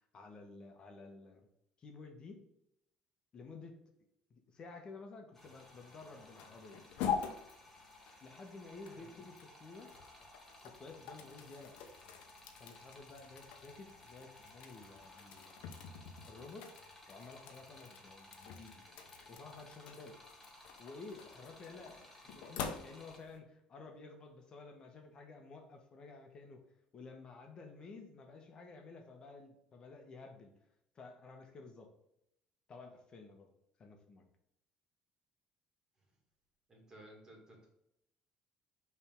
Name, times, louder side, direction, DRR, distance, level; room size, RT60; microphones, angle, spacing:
voice 1, 0.0-1.5 1.8-2.4 3.3-3.8 4.3-6.8 8.2-9.9 10.6-11.7 12.6-15.7 16.2-16.7 17.1-18.8 19.3-20.2 20.8-22.0 22.3-26.6 26.9-30.5 30.9-31.9 32.7-33.5 33.8-34.2, left 3 dB, 35° left, 4 dB, 1.2 m, -52 dB
sound 1, 5.3-23.2, left 1 dB, 10° left, 1.4 m, -58 dB
sound 2, 5.4-23.4, left 7 dB, 80° left, 0.8 m, -46 dB
voice 2, 36.7-37.7, right 1 dB, 25° right, 0 dB, 2.4 m, -56 dB
5.4 x 3.5 x 5.3 m, 0.80 s
cardioid pair, 120°, 2 cm